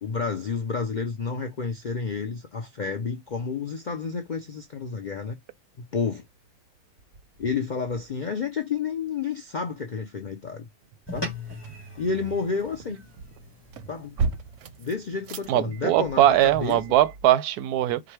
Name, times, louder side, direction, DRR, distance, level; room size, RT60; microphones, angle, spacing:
voice 1, 0.0-5.4 5.8-6.2 7.4-10.7 11.1-11.3 12.0-13.0 13.9-14.2 14.8-16.8, left 5 dB, 65° left, 0.4 m, -30 dB
sound 1, 6.2-6.5 7.0-8.2 10.8-17.3, right 4 dB, 65° right, 0.8 m, -37 dB
sound 2, 11.1-15.7, left 2 dB, 10° left, 1.2 m, -41 dB
voice 2, 15.5-18.0, right 13 dB, 90° right, 1.1 m, -21 dB
4.9 x 2.2 x 4.5 m
omnidirectional pair, 1.6 m